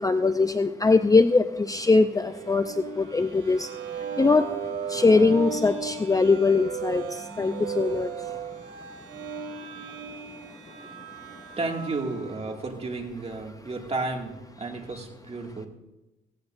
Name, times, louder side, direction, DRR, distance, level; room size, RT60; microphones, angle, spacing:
voice 1, 0.0-3.7 4.0-4.5 4.9-8.4 10.5-11.4, left 3 dB, 15° left, 9 dB, 0.6 m, -22 dB
sound 1, 2.2-12.4, right 6 dB, 90° right, 2.7 m, -36 dB
voice 2, 11.6-15.7, right 3 dB, 30° right, 2 dB, 2.3 m, -32 dB
16.5 x 16.5 x 2.6 m, 1.0 s
cardioid pair, 90°, 20 cm